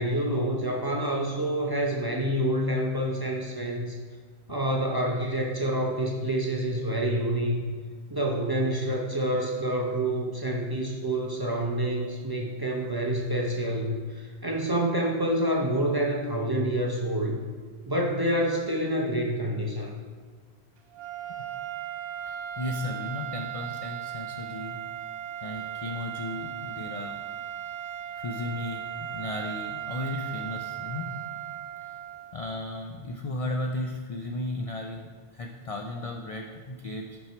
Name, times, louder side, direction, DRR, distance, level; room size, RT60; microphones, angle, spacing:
voice 1, 0.0-3.9 4.5-7.6 8.1-17.4 17.9-19.9, right 1 dB, 25° right, -1 dB, 0.5 m, -27 dB
sound 1, 20.9-32.5, right 11 dB, 65° right, 0.8 m, -37 dB
voice 2, 22.3-24.8 25.4-27.2 28.1-31.1 32.3-35.0 35.3-37.2, left 2 dB, 55° left, 2 dB, 0.4 m, -35 dB
5.7 x 5.4 x 4.4 m, 1.5 s
omnidirectional pair, 1.1 m